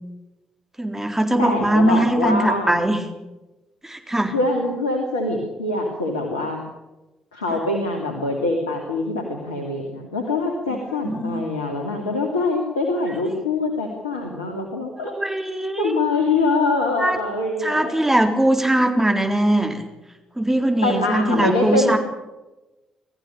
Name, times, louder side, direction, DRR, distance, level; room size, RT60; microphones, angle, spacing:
voice 1, 0.8-3.0 3.8-4.4 10.7-11.4 13.3-13.4 15.0-16.0 17.0-17.2 17.6-19.9 20.4-22.0, right 1 dB, 10° right, 4 dB, 3.9 m, -21 dB
voice 2, 1.4-2.7 4.3-6.6 7.3-15.1 15.8-18.0 20.8-22.0, left 2 dB, 90° left, 2 dB, 2.5 m, -24 dB
22.0 x 14.5 x 8.8 m, 1.1 s
hypercardioid pair, 45°, 3 cm